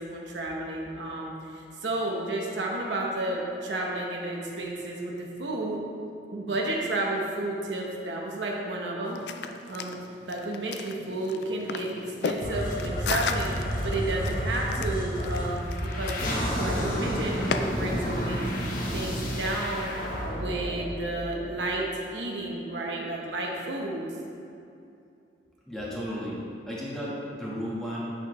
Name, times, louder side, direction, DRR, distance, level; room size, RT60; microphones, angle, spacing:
voice 1, 0.0-5.8 6.3-9.2 9.7-13.5 13.8-16.2 16.6-18.5 18.9-24.1, right 2 dB, 85° right, -1 dB, 1.1 m, -32 dB
sound 1, 9.1-17.6, left 5 dB, 70° left, 0.4 m, -35 dB
sound 2, 12.4-21.7, equal, 50° left, 1.2 m, -30 dB
voice 2, 25.7-26.4 26.7-28.1, equal, 5° left, -7 dB, 1.5 m, -34 dB
8.4 x 6.4 x 3.2 m, 2.6 s
head